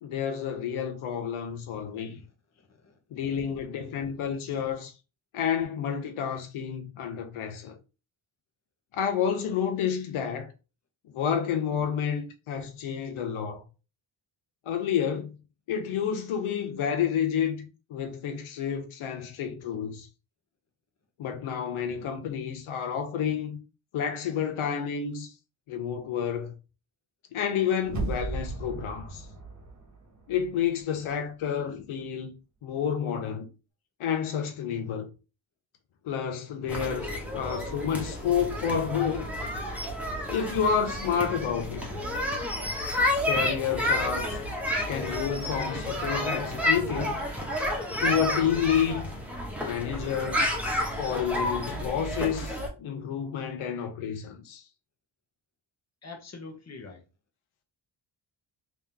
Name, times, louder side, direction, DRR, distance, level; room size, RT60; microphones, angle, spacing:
voice 1, 0.0-2.2 3.1-4.9 5.3-7.7 8.9-10.5 11.1-13.6 14.7-15.3 15.7-20.1 21.2-23.6 23.9-25.3 25.7-26.5 27.3-29.3 30.3-32.3 32.6-33.5 34.0-35.1 36.0-39.3 40.3-41.9 43.2-44.4 44.9-47.2 48.0-49.0 49.6-50.4 51.0-54.6, left 8 dB, 85° left, 0.8 m, -30 dB
voice 2, 2.7-3.0 56.0-57.0, left 3 dB, 35° left, 1.1 m, -44 dB
sound 1, 27.8-30.8 31.1-31.2, right 3 dB, 35° right, 1.2 m, -36 dB
sound 2, 36.7-52.7, left 1 dB, 5° right, 1.2 m, -30 dB
3.5 x 2.9 x 3.4 m
cardioid pair, 70°, 48 cm